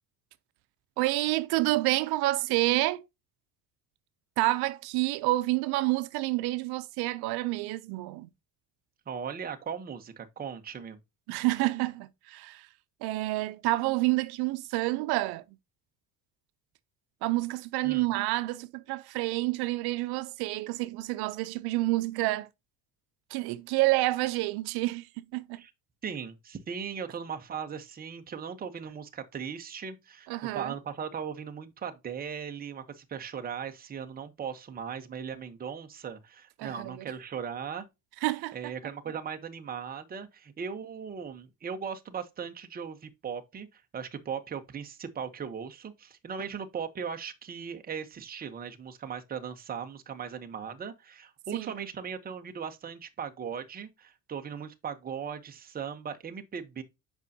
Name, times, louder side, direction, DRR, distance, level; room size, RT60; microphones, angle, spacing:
voice 1, 1.0-3.0 4.4-8.3 11.3-12.7 13.0-15.4 17.2-22.5 23.3-25.6 30.3-30.7 36.6-36.9 38.2-38.6 51.5-51.8, right 19 dB, 85° right, 0.6 m, -28 dB
voice 2, 9.1-11.0 17.8-18.1 25.5-25.7 26.0-37.8 38.5-56.8, right 7 dB, 25° right, 0.9 m, -38 dB
8.1 x 5.4 x 2.7 m
cardioid pair, 150°, 37 cm